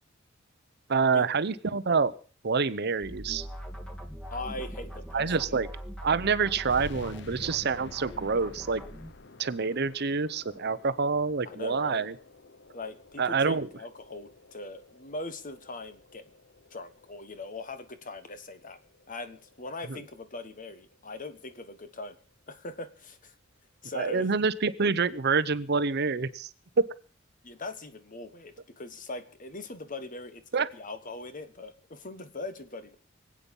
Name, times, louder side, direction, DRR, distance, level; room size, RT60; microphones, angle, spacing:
voice 1, 0.9-2.1 2.4-3.5 5.1-5.7 6.0-8.8 9.4-12.1 13.2-13.7 19.9-20.0 23.9-26.5 26.8-26.9 30.5-30.7, right 5 dB, 55° right, 15 dB, 0.8 m, -27 dB
sound 1, 3.0-9.1, equal, 5° left, 1.7 m, -42 dB
voice 2, 4.3-5.3 11.4-12.1 12.7-16.3 16.7-18.8 19.1-22.2 22.5-23.3 23.8-24.3 27.4-33.0, left 2 dB, 45° left, 11 dB, 1.4 m, -41 dB
sound 2, 6.7-21.8, left 2 dB, 60° left, 0.9 m, -51 dB
23.5 x 8.7 x 5.4 m, 0.41 s
head